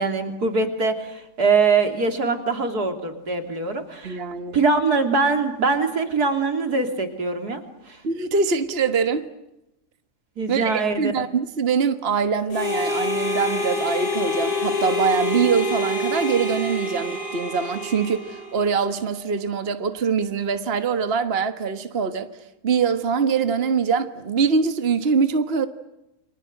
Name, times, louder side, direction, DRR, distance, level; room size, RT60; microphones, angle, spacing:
voice 1, 0.0-4.2 4.5-7.6 7.9-8.0 10.4-11.2, right 4 dB, 75° right, 3.7 m, -23 dB
voice 2, 4.0-4.6 8.0-9.3 10.5-22.3 22.6-25.7, right 5 dB, 40° right, 1.6 m, -23 dB
Harmonica, 12.5-18.9, left 2 dB, 80° left, 8.3 m, -26 dB
30.0 x 25.0 x 7.9 m
omnidirectional pair, 1.7 m